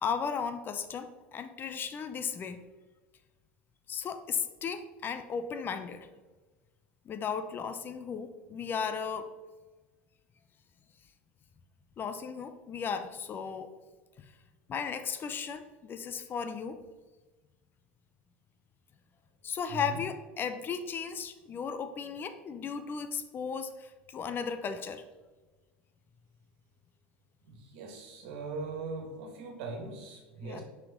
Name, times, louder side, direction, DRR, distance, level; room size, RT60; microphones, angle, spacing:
voice 1, 0.0-2.6 3.9-6.1 7.0-9.3 12.0-13.7 14.2-14.3 14.7-16.8 19.4-25.0 30.4-30.6, left 6 dB, 35° left, 9 dB, 0.6 m, -35 dB
voice 2, 27.4-30.6, right 4 dB, 70° right, 3 dB, 1.6 m, -40 dB
5.6 x 5.2 x 3.7 m, 1.2 s
hypercardioid pair, 100°, 6 cm